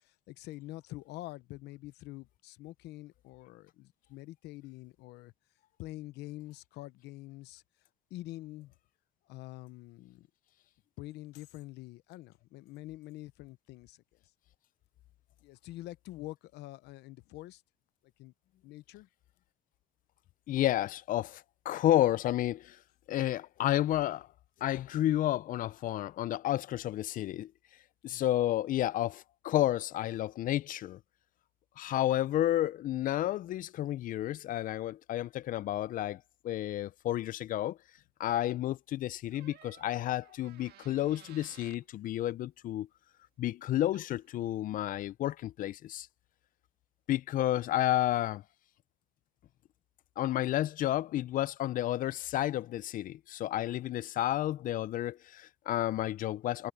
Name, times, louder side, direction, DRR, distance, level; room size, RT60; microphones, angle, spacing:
voice 1, 0.0-5.3 5.8-7.6 8.1-8.7 9.3-10.3 11.0-14.0 15.4-17.6 18.2-18.3 18.6-19.1 28.1-28.2, left 17 dB, 85° left, 0.8 m, -46 dB
voice 2, 20.5-22.8 23.1-24.3 24.6-27.5 28.0-31.0 31.8-37.8 38.2-42.9 43.4-46.1 47.1-48.4 50.2-56.7, left 13 dB, 55° left, 0.4 m, -31 dB
Door, 39.3-41.9 43.6-43.7 43.9-44.3, right 12 dB, 70° right, 2.0 m, -57 dB
cardioid pair, 110°, 17 cm